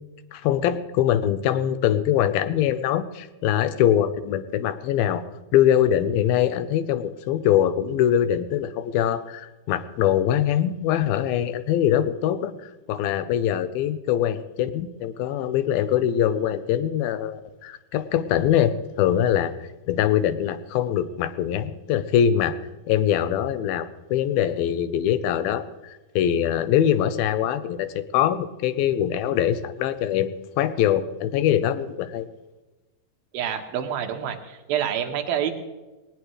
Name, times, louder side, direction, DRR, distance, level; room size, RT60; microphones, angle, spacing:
voice 1, 0.3-5.2 5.5-12.5 12.9-19.5 19.9-22.6 22.9-32.3, left 10 dB, 85° left, 12 dB, 2.6 m, -23 dB
voice 2, 33.3-35.5, right 9 dB, 80° right, 5 dB, 3.1 m, -27 dB
19.5 x 19.0 x 3.2 m, 1.1 s
omnidirectional pair, 4.2 m